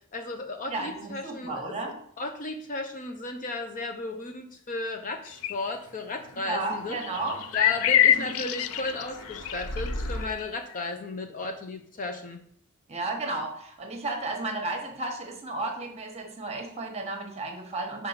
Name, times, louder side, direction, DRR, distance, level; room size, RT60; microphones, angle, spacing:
voice 1, 0.1-1.8 2.2-7.0 7.5-12.4, left 2 dB, 35° left, 5 dB, 0.7 m, -34 dB
voice 2, 0.7-2.0 6.4-7.4 8.1-8.3 12.9-18.1, right 2 dB, 30° right, 3 dB, 1.2 m, -33 dB
sound 1, 5.4-5.7 6.9-9.9 10.2-10.5 10.9-11.0, left 11 dB, 65° left, 0.3 m, -25 dB
sound 2, 5.8-10.3, left 1 dB, 80° left, 1.0 m, -39 dB
5.8 x 4.3 x 5.7 m, 0.63 s
head